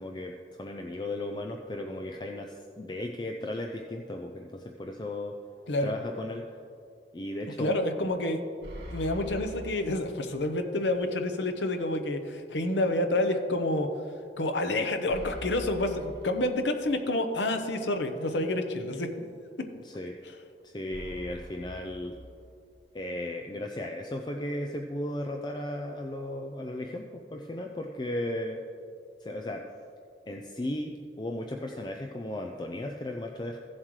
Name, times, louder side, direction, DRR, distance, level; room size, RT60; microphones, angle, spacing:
voice 1, 0.0-5.4 5.8-6.4 7.1-7.8 19.7-20.2 20.6-22.2 22.9-28.6 29.2-29.6 30.3-33.6, left 1 dB, 25° left, 3 dB, 0.4 m, -35 dB
voice 2, 7.6-8.4 8.9-13.9 14.4-19.1, left 1 dB, 90° left, 6 dB, 0.9 m, -28 dB
sound 1, 8.6-10.6 11.0-11.1 15.1-17.1 20.9-22.9, equal, 70° right, 2.4 m, -44 dB
15.0 x 7.4 x 3.2 m, 2.4 s
head